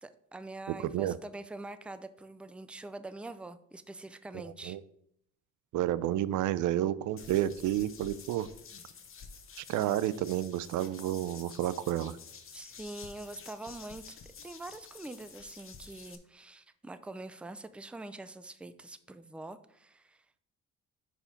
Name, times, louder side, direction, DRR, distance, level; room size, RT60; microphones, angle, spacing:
voice 1, 0.0-4.8 12.5-14.2 14.4-20.4, right 2 dB, 5° right, 12 dB, 0.4 m, -44 dB
voice 2, 0.8-1.1 4.3-4.8 5.7-8.5 9.6-12.2, right 12 dB, 80° right, 17 dB, 0.5 m, -30 dB
sound 1, 7.2-16.2, left 6 dB, 45° left, 1.0 m, -50 dB
5.0 x 4.9 x 5.7 m, 0.72 s
cardioid pair, 90°, 30 cm